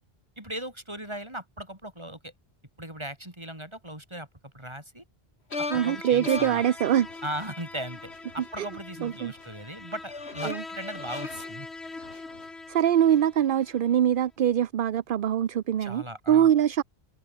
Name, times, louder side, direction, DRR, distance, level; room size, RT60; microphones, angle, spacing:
voice 1, 0.4-2.3 2.8-4.3 4.5-5.0 5.6-6.6 7.2-11.7 15.8-16.5, right 1 dB, 25° right, 5.6 m, -38 dB
sound 1, 5.5-13.7, left 3 dB, 80° left, 3.2 m, -39 dB
voice 2, 5.7-7.1 8.6-8.7 9.0-9.3 10.4-10.6 12.7-16.8, right 10 dB, 60° right, 0.8 m, -23 dB
omnidirectional pair, 1.1 m